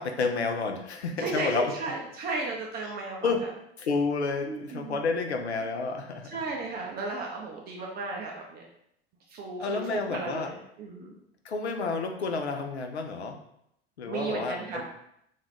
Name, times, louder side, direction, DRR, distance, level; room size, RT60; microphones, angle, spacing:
voice 1, 0.0-1.7 3.2-3.4 3.8-6.4 9.6-10.5 11.0-11.2 11.4-13.4 14.0-14.8, left 4 dB, 85° left, 4 dB, 0.5 m, -30 dB
voice 2, 1.2-3.3 4.5-5.0 6.2-8.6 9.3-11.1 14.1-14.8, right 3 dB, 30° right, -1 dB, 0.5 m, -34 dB
2.5 x 2.3 x 3.3 m, 0.76 s
figure-of-eight pair, 80°, 32 cm